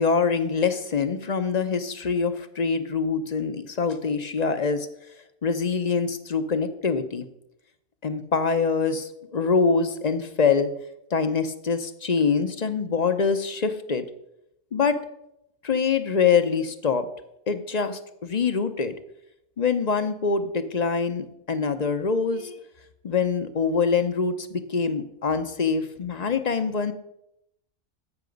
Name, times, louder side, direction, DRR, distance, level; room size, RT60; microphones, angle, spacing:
voice 1, 0.0-4.9 5.4-7.3 8.0-10.7 11.1-14.1 14.7-15.0 15.6-17.1 17.5-18.9 19.6-22.6 23.0-26.9, left 5 dB, 40° left, 10 dB, 0.7 m, -24 dB
14.5 x 5.9 x 5.2 m, 0.81 s
omnidirectional pair, 1.2 m